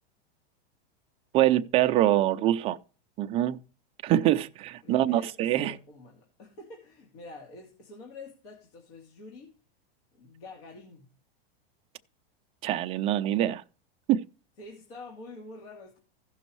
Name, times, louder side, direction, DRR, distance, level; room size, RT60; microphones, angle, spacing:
voice 1, 1.3-2.8 3.2-3.6 4.0-5.8 12.6-13.6 14.1-14.2, right 13 dB, 20° right, 0.4 m, -24 dB
voice 2, 4.8-9.5 10.1-11.1 14.6-16.0, left 2 dB, 70° left, 2.7 m, -47 dB
16.0 x 6.1 x 3.1 m
supercardioid pair, 145°, 30 cm